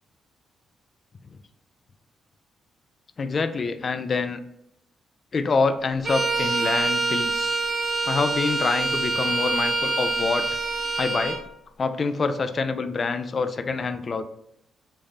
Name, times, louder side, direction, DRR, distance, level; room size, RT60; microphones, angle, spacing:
voice 1, 3.2-4.4 5.3-7.5 8.1-10.4 11.0-11.4 11.8-14.3, left 4 dB, 45° left, 10 dB, 0.3 m, -26 dB
Bowed string instrument, 6.0-11.4, right 3 dB, 45° right, 0.9 m, -25 dB
3.3 x 2.1 x 3.7 m, 0.78 s
supercardioid pair, 65°, 0 cm